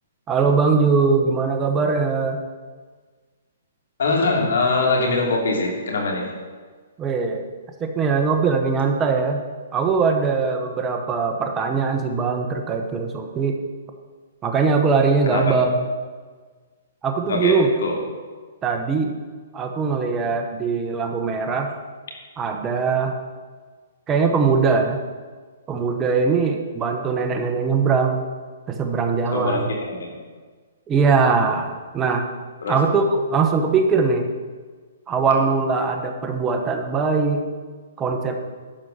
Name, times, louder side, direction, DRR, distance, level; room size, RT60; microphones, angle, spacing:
voice 1, 0.3-2.4 7.0-7.4 7.8-9.4 9.7-13.6 14.4-15.9 17.0-17.7 18.6-19.1 19.5-21.7 22.4-23.2 24.1-25.0 25.7-28.2 28.7-29.7 30.9-32.3 32.7-34.2 35.1-37.5 38.0-38.4, right 4 dB, 15° right, 4 dB, 1.0 m, -21 dB
voice 2, 4.0-6.3 15.3-15.5 17.3-17.6 17.8-17.9 29.3-30.2 32.6-32.8, left 3 dB, 75° left, 0 dB, 3.0 m, -22 dB
11.5 x 4.8 x 8.0 m, 1.5 s
hypercardioid pair, 160°, 0 cm